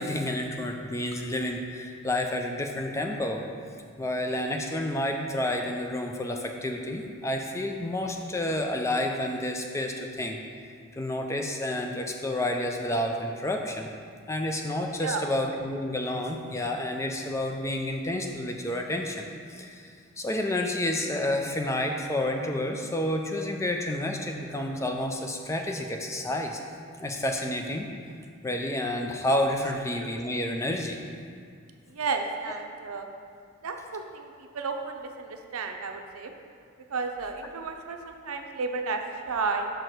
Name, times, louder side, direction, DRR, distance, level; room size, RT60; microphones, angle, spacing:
voice 1, 0.0-3.4 4.0-10.4 10.9-13.9 14.3-26.6 27.0-27.9 28.4-31.0, left 1 dB, 15° left, 3 dB, 0.4 m, -30 dB
voice 2, 31.9-33.1 33.6-36.3 36.9-39.7, right 4 dB, 85° right, 5 dB, 0.6 m, -32 dB
6.4 x 4.8 x 4.5 m, 2.2 s
head